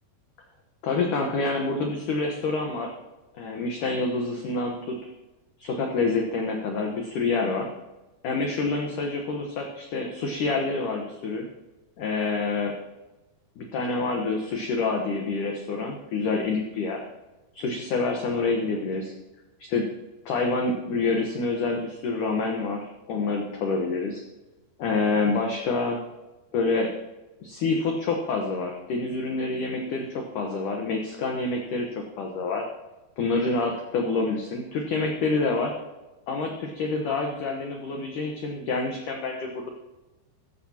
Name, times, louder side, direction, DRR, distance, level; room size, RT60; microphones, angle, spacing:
voice 1, 0.8-2.9 3.4-5.1 5.6-7.7 8.2-11.5 12.0-12.8 13.6-17.0 17.5-19.1 19.6-19.8 20.3-24.2 24.8-26.0 26.5-26.9 27.4-31.9 32.2-32.6 33.2-35.7 36.3-39.7, left 3 dB, 65° left, 1 dB, 2.1 m, -27 dB
16.0 x 14.5 x 2.9 m, 1.1 s
omnidirectional pair, 5.1 m